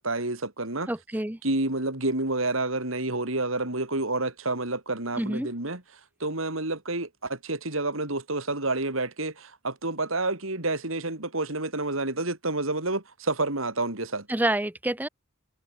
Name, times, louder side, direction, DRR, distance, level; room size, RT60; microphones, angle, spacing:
voice 1, 0.0-0.9 1.4-5.8 6.2-14.3, right 2 dB, 75° right, 4.6 m, -29 dB
voice 2, 0.9-1.4 5.2-5.5 14.3-15.1, right 1 dB, 10° right, 0.8 m, -27 dB
head